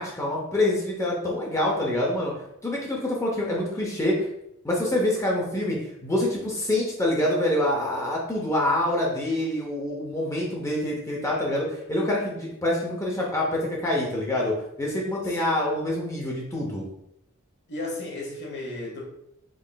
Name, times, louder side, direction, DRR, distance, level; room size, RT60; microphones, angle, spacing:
voice 1, 0.0-2.3 2.6-4.3 4.6-16.8, left 1 dB, 15° left, -3 dB, 0.6 m, -26 dB
voice 2, 15.2-15.6 17.7-19.0, left 2 dB, 50° left, -1 dB, 1.0 m, -34 dB
3.8 x 3.7 x 2.2 m, 0.80 s
head